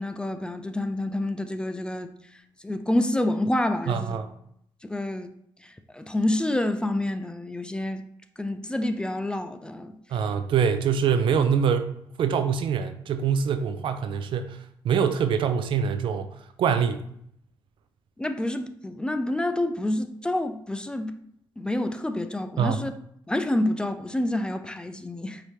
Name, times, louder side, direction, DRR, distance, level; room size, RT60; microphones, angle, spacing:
voice 1, 0.0-2.1 2.6-4.2 4.8-5.3 5.9-8.0 8.4-9.9 18.2-21.1 21.6-22.9 23.3-25.4, left 1 dB, 10° left, 0.3 m, -28 dB
voice 2, 3.9-4.3 10.1-11.9 12.2-14.6 14.8-16.3 16.6-17.0 22.6-22.8, right 7 dB, 70° right, 0.4 m, -24 dB
4.9 x 2.8 x 3.1 m
cardioid pair, 100°, 9 cm